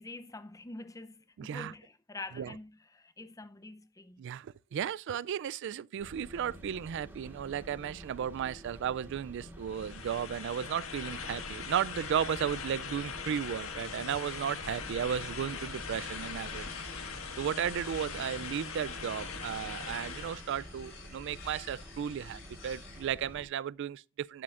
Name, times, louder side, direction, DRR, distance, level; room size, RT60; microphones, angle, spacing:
voice 1, 0.0-4.2, left 2 dB, 15° left, 0.6 m, -46 dB
voice 2, 1.4-1.7 2.4-2.5 4.2-16.7 17.4-24.4, right 8 dB, 60° right, 0.3 m, -34 dB
sound 1, 6.0-23.4, equal, 10° right, 3.2 m, -50 dB
sound 2, 9.6-20.5, left 5 dB, 90° left, 1.6 m, -41 dB
sound 3, 15.5-23.1, left 4 dB, 65° left, 4.7 m, -50 dB
11.5 x 7.6 x 2.5 m
head